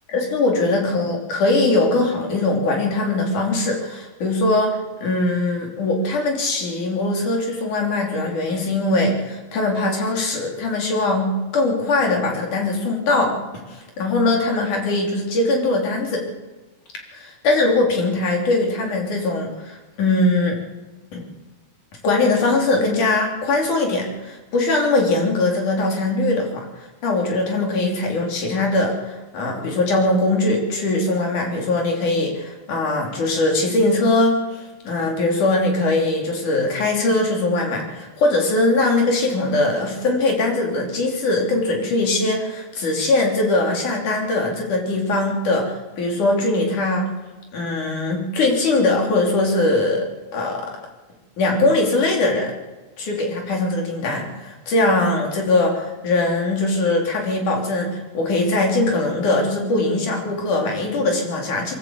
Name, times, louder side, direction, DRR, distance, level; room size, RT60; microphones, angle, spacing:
voice 1, 0.1-13.4 13.7-16.3 17.1-20.6 21.1-21.2 22.0-26.7 27.0-47.1 47.5-50.1 50.3-50.7 51.4-52.5 53.0-61.7, left 2 dB, 90° left, 1 dB, 4.9 m, -21 dB
23.5 x 13.5 x 8.2 m, 1.2 s
omnidirectional pair, 3.4 m